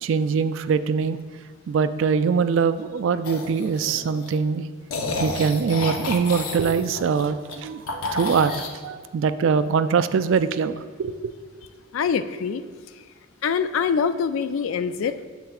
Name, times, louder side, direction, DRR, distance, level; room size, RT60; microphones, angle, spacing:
voice 1, 0.0-1.2 1.7-4.7 5.2-11.1, right 6 dB, 65° right, 12 dB, 0.3 m, -23 dB
sound 1, 3.2-4.3 4.9-7.6 7.9-8.7, left 3 dB, 90° left, 0.8 m, -30 dB
voice 2, 11.9-12.6 13.4-15.2, left 6 dB, 75° left, 12 dB, 0.3 m, -24 dB
9.1 x 7.7 x 2.4 m, 1.5 s
head